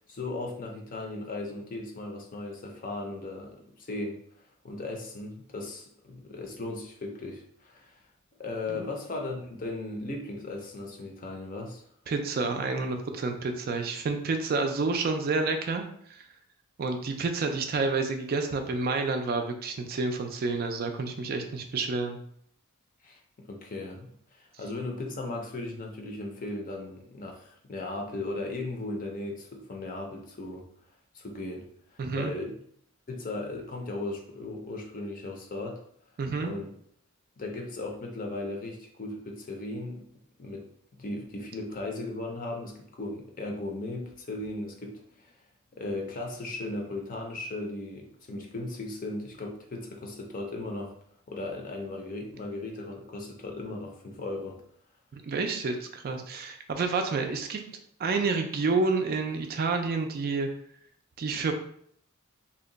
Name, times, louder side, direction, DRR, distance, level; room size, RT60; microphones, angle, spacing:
voice 1, 0.1-4.2 4.6-8.0 8.4-11.8 23.0-30.6 31.1-32.6 33.1-35.8 36.4-36.7 37.4-40.6 40.9-45.3 45.7-50.9 51.3-54.6, left 2 dB, 40° left, 1 dB, 0.5 m, -37 dB
voice 2, 12.1-15.8 16.8-22.2 32.0-32.3 36.2-36.5 55.1-57.6 58.0-60.5 61.2-61.5, right 3 dB, 45° right, 5 dB, 0.3 m, -29 dB
2.7 x 2.2 x 3.8 m, 0.66 s
head